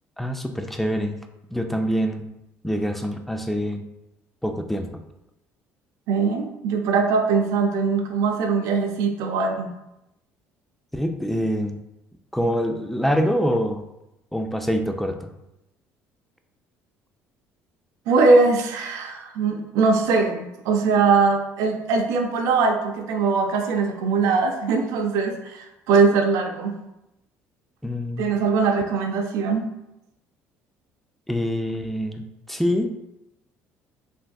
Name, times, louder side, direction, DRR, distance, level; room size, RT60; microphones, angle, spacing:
voice 1, 0.2-1.2 1.5-2.3 2.6-3.8 4.4-5.0 10.9-11.8 12.3-13.8 14.3-15.3 27.8-28.3 31.3-32.9, equal, 5° left, 5 dB, 0.3 m, -25 dB
voice 2, 6.1-9.7 18.1-26.7 28.2-29.7, right 4 dB, 75° right, 3 dB, 0.5 m, -21 dB
3.4 x 2.5 x 2.3 m, 0.89 s
cardioid pair, 100°, 6 cm